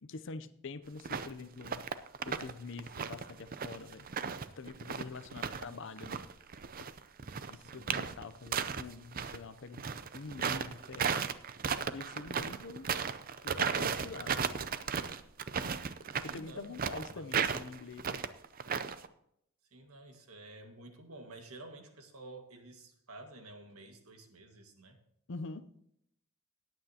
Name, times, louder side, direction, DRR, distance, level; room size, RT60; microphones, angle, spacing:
voice 1, 0.0-1.8 2.2-4.1 4.6-6.2 7.5-9.8 10.1-11.4 11.9-12.9 13.4-14.5 16.2-18.2 25.3-25.7, left 4 dB, 60° left, 12 dB, 0.6 m, -45 dB
sound 1, 1.0-1.3 1.6-2.5 2.8-5.6 6.0-9.4 9.7-19.1, right 6 dB, 40° right, 0.5 m, -35 dB
voice 2, 5.3-5.8 7.5-8.0 16.1-16.8 17.1-17.3 19.7-25.0, right 2 dB, 90° right, 4 dB, 1.8 m, -51 dB
17.5 x 8.9 x 2.9 m, 0.74 s
head